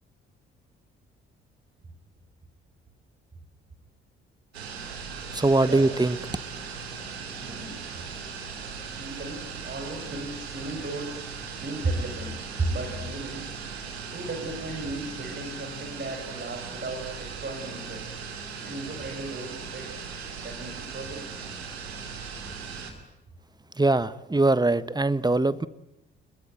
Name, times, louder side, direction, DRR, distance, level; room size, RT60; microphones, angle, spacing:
sound 1, 4.5-22.9, right 5 dB, 85° right, 2.7 m, -38 dB
voice 1, 5.3-6.2 23.7-25.7, right 2 dB, 15° right, 16 dB, 1.4 m, -22 dB
voice 2, 7.1-7.8 9.0-11.2 11.6-13.5 14.1-18.0 18.6-20.0 20.4-21.3, right 2 dB, 35° right, 3 dB, 7.5 m, -35 dB
28.5 x 22.0 x 9.5 m, 0.90 s
figure-of-eight pair, 45°, 31 cm